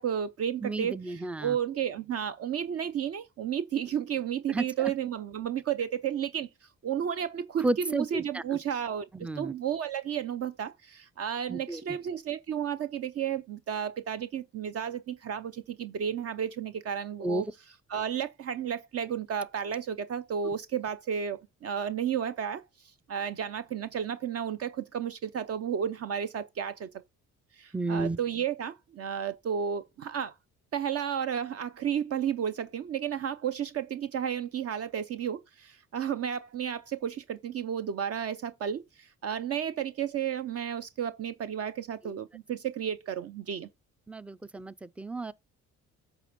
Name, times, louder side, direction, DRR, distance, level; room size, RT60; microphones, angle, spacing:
voice 1, 0.0-6.5 6.8-17.5 17.9-26.9 27.5-30.3 30.7-43.7, right 8 dB, 55° right, 0.6 m, -32 dB
voice 2, 0.6-1.6 4.5-4.6 7.6-8.4 9.1-9.5 11.5-11.8 17.2-17.4 27.7-28.2 44.1-45.3, right 2 dB, 5° right, 0.3 m, -32 dB
8.2 x 3.4 x 5.1 m
cardioid pair, 90°, 30 cm